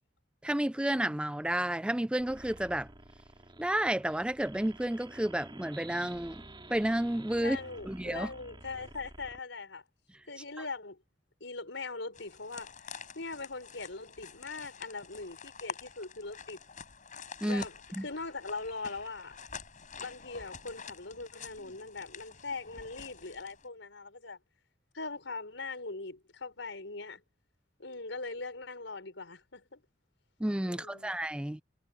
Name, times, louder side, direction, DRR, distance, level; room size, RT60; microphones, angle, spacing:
voice 1, 0.4-2.9 3.6-6.4 6.7-7.6 7.8-8.3 10.6-10.7 17.4-17.6 18.0-18.1 30.4-31.6, right 1 dB, 5° right, 0.4 m, -31 dB
sound 1, 2.2-9.4, right 2 dB, 25° right, 3.7 m, -51 dB
voice 2, 7.4-9.8 10.3-11.0 11.4-16.6 17.4-17.7 18.0-19.3 20.0-24.4 24.9-27.2 27.8-29.8 30.6-31.1, left 3 dB, 85° left, 4.8 m, -41 dB
sound 2, 12.1-23.7, left 6 dB, 45° left, 5.5 m, -48 dB
head